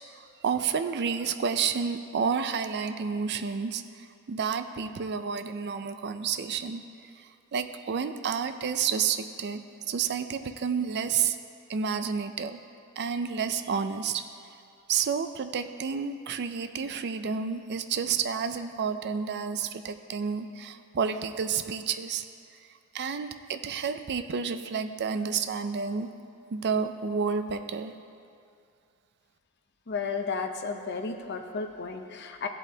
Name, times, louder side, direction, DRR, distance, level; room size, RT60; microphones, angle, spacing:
voice 1, 0.1-6.8 7.2-9.6 9.9-11.4 11.7-12.6 13.0-14.2 14.9-22.2 22.9-26.1 26.5-27.9, right 6 dB, 50° right, 9 dB, 0.4 m, -30 dB
voice 2, 29.9-32.5, left 4 dB, 50° left, 4 dB, 0.7 m, -33 dB
15.5 x 8.1 x 2.8 m, 2.5 s
head